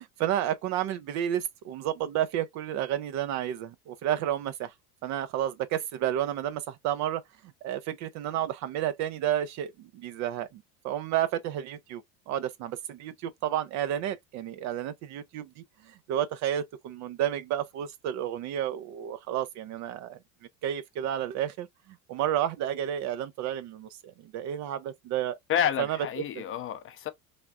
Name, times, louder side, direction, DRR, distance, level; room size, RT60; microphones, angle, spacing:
voice 1, 0.0-4.7 5.0-7.2 7.6-20.2 20.6-21.7 22.1-25.4 25.8-26.0 26.4-26.5, right 11 dB, 40° right, 0.4 m, -31 dB
voice 2, 25.5-27.1, left 9 dB, 30° left, 0.5 m, -29 dB
3.4 x 2.4 x 2.3 m
hypercardioid pair, 85°, 44 cm